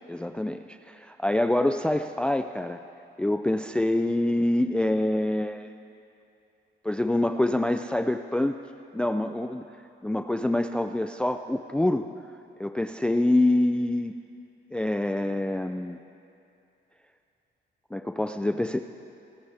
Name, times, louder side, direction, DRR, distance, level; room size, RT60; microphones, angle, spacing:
voice 1, 0.1-2.8 3.2-5.7 6.8-8.6 8.9-9.6 10.0-12.1 12.6-14.1 14.7-16.0 17.9-18.8, left 1 dB, 5° left, 7 dB, 0.4 m, -26 dB
24.5 x 14.0 x 3.5 m, 2.8 s
cardioid pair, 90°, 20 cm